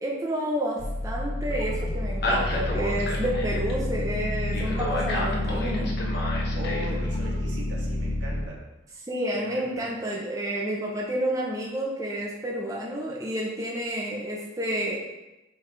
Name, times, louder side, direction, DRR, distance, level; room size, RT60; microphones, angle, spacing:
voice 1, 0.0-6.0 9.1-15.0, right 1 dB, 15° right, -4 dB, 0.8 m, -30 dB
sound 1, 0.8-8.4, left 1 dB, 55° left, 1.0 m, -28 dB
voice 2, 6.5-8.6 9.3-10.0, equal, 70° right, -3 dB, 1.5 m, -39 dB
8.3 x 3.5 x 3.4 m, 1.0 s
head